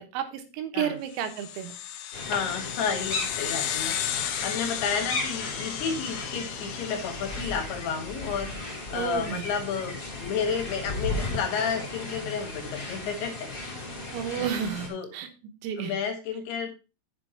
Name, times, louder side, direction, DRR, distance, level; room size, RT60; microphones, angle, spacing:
voice 1, 0.0-1.7 8.9-9.5 14.1-15.3 15.6-16.0, right 9 dB, 85° right, 7 dB, 3.9 m, -31 dB
sound 1, 1.2-8.0, left 11 dB, 85° left, 2.5 m, -34 dB
sound 2, 2.1-14.9, left 2 dB, 30° left, 1.8 m, -36 dB
voice 2, 2.3-13.5 14.4-14.5 14.9-15.1 15.8-16.7, left 6 dB, 65° left, 5 dB, 3.0 m, -31 dB
7.5 x 7.3 x 4.4 m, 0.31 s
omnidirectional pair, 5.9 m